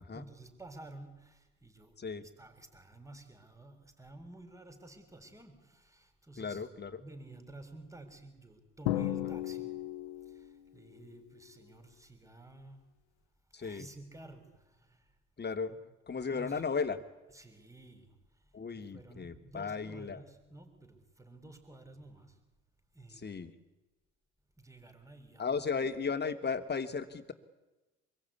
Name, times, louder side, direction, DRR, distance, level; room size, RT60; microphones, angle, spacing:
voice 1, 0.1-2.0 2.4-6.7 7.0-9.8 10.2-12.9 13.6-15.2 15.7-15.8 16.3-16.7 17.3-22.4 22.9-23.3 24.6-25.7, right 2 dB, 10° right, 7 dB, 6.9 m, -52 dB
voice 2, 2.0-2.3 6.4-7.0 9.2-9.4 13.5-13.9 15.4-15.7 16.1-17.0 18.5-20.2 23.1-23.5 25.4-27.3, left 5 dB, 30° left, 9 dB, 3.0 m, -35 dB
Drum, 8.9-10.6, left 14 dB, 75° left, 1.7 m, -35 dB
26.5 x 22.5 x 9.9 m, 1.1 s
hypercardioid pair, 60°, 34 cm